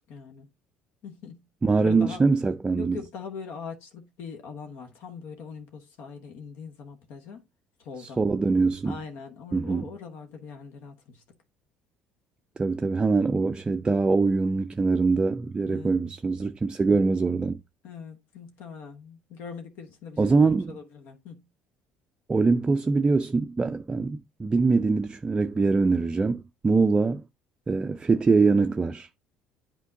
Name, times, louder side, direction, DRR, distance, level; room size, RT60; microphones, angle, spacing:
voice 1, 0.1-0.5 1.0-1.4 1.8-2.2 2.8-7.4 7.8-8.2 8.8-11.2 15.7-16.0 17.8-21.4, left 5 dB, 60° left, 1.1 m, -41 dB
voice 2, 1.6-3.0 8.0-9.0 9.5-9.9 12.6-17.6 20.2-20.8 22.3-27.2 27.7-29.1, right 4 dB, 20° right, 0.4 m, -23 dB
10.5 x 4.4 x 2.6 m
figure-of-eight pair, 55°, 4 cm